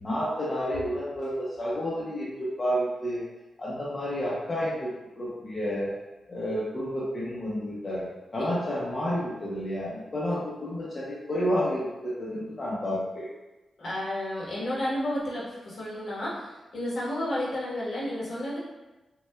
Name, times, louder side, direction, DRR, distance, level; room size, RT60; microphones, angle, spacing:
voice 1, 0.0-2.3 2.6-3.2 3.6-4.9 5.1-5.9 6.3-13.3, equal, 30° left, -8 dB, 0.7 m, -30 dB
voice 2, 13.8-18.6, left 1 dB, 55° left, -6 dB, 1.2 m, -31 dB
5.7 x 2.2 x 2.2 m, 1.1 s
wide cardioid pair, 160°, 0 cm